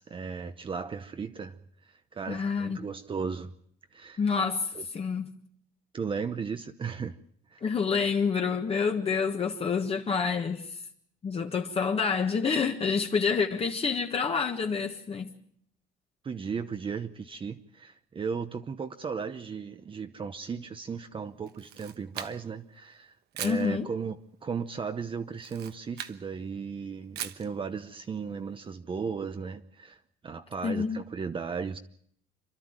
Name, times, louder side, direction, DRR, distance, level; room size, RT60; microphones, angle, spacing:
voice 1, 0.0-1.6 1.8-3.5 3.9-4.2 4.7-4.9 5.9-7.2 7.5-7.6 16.2-31.8, right 5 dB, 30° right, 0.9 m, -36 dB
voice 2, 2.3-2.8 4.2-5.3 7.6-10.7 11.2-15.3 23.4-23.9 30.6-31.0, left 5 dB, 35° left, 1.4 m, -28 dB
Camera, 21.5-22.6 23.3-23.7 25.3-26.2 27.1-27.5, right 11 dB, 75° right, 1.2 m, -39 dB
27.5 x 12.0 x 8.9 m
cardioid pair, 110°, 17 cm